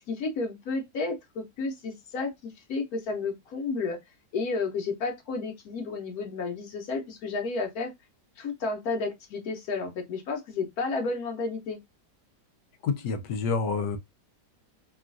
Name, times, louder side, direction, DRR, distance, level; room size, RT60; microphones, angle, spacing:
voice 1, 0.1-4.0 4.3-7.9 8.4-11.8, left 4 dB, 65° left, 1.1 m, -32 dB
voice 2, 12.8-14.0, left 5 dB, 90° left, 1.2 m, -28 dB
3.0 x 2.3 x 2.4 m
omnidirectional pair, 1.8 m